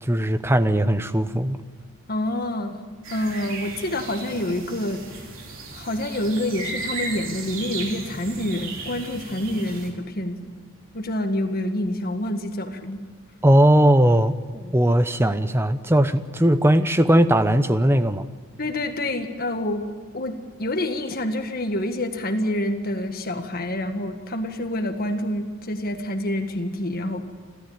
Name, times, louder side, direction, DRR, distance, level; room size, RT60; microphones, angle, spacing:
voice 1, 0.0-1.6 13.4-18.3, right 1 dB, 10° right, 11 dB, 0.8 m, -19 dB
voice 2, 2.1-2.8 3.1-5.0 5.7-10.5 10.9-13.0 18.6-19.8 20.1-27.2, left 1 dB, 45° left, 6 dB, 1.8 m, -27 dB
sound 1, 3.0-9.9, right 3 dB, 65° right, 3.6 m, -35 dB
29.0 x 13.0 x 8.9 m, 1.5 s
head